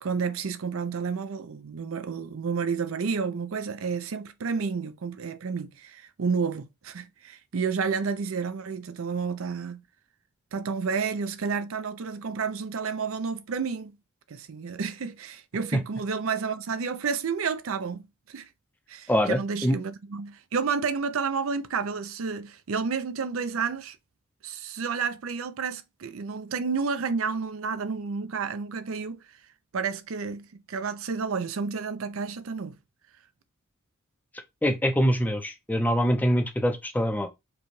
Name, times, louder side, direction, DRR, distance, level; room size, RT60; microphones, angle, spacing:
voice 1, 0.0-9.8 10.5-13.9 14.3-18.5 18.9-24.0 24.4-29.2 29.7-32.8, right 5 dB, 75° right, 0.5 m, -30 dB
voice 2, 19.1-19.7 34.6-37.3, equal, 10° left, 0.6 m, -24 dB
5.0 x 2.3 x 3.1 m
head